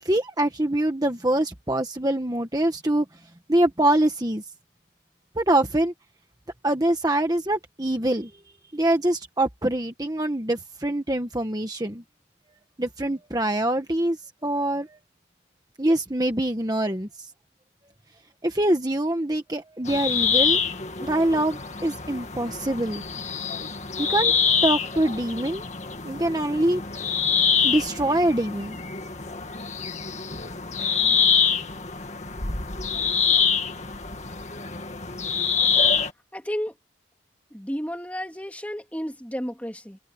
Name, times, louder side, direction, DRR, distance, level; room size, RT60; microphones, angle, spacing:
voice 1, 0.0-3.1 3.5-4.4 5.3-5.9 6.6-8.3 8.7-12.0 12.8-15.0 15.8-17.3 18.4-20.6 21.0-23.0 24.0-24.3 24.6-25.6 26.0-26.8 27.6-28.8, right 1 dB, 20° right, 1.3 m, -24 dB
sound 1, 19.9-36.1, left 6 dB, 35° left, 2.0 m, -25 dB
voice 2, 36.3-36.7 37.5-40.0, equal, 10° left, 2.8 m, -32 dB
head